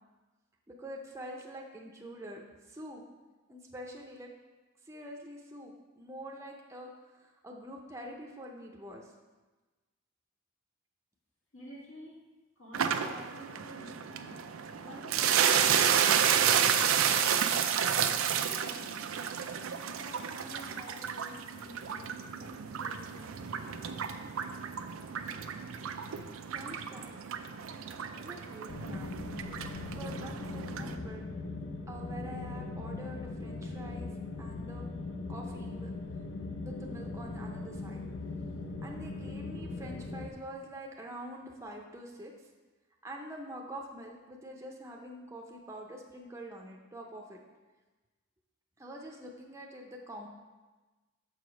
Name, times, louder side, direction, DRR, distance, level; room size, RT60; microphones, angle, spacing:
voice 1, 0.7-3.0 3.5-4.3 4.8-9.1 26.5-27.2 28.1-29.2 29.8-31.3 31.9-34.1 34.4-34.9 35.3-35.9 36.6-38.0 38.8-42.5 43.0-47.4 48.8-50.3, right 1 dB, 15° right, 0 dB, 0.6 m, -45 dB
voice 2, 11.5-12.2 12.6-14.4 14.8-18.1 18.4-19.6 20.0-23.6, equal, 80° left, -6 dB, 2.5 m, -50 dB
sound 1, 12.7-31.0, right 8 dB, 90° right, 0.5 m, -31 dB
sound 2, 28.7-40.3, left 3 dB, 65° left, 0.6 m, -40 dB
6.5 x 4.8 x 5.1 m, 1.2 s
head